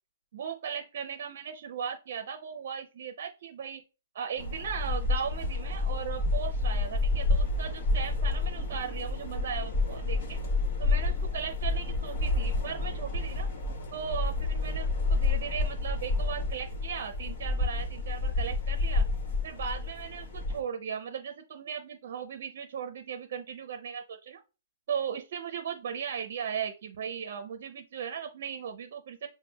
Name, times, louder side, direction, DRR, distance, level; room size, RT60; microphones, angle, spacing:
voice 1, 0.3-3.8 4.1-10.4 10.8-13.5 13.9-19.0 19.4-24.4 24.9-29.3, right 7 dB, 55° right, 7 dB, 0.5 m, -37 dB
sound 1, 4.4-20.6, left 2 dB, 55° left, 1.2 m, -29 dB
5.9 x 2.1 x 2.3 m, 0.31 s
hypercardioid pair, 155°, 0 cm